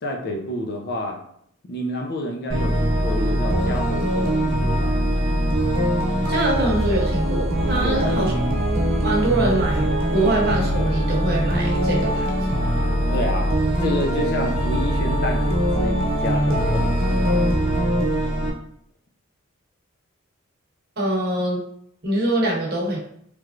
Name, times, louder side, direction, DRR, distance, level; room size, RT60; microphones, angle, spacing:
voice 1, 0.0-1.2 1.6-5.0 7.8-8.2 13.1-13.5 13.8-17.4, left 1 dB, 50° left, 2 dB, 0.5 m, -29 dB
sound 1, 2.5-18.5, equal, 65° right, 1.0 m, -22 dB
voice 2, 6.3-8.3 9.0-12.3 21.0-21.6 22.0-23.0, right 1 dB, 50° right, -2 dB, 0.9 m, -23 dB
3.3 x 3.1 x 2.4 m, 0.68 s
head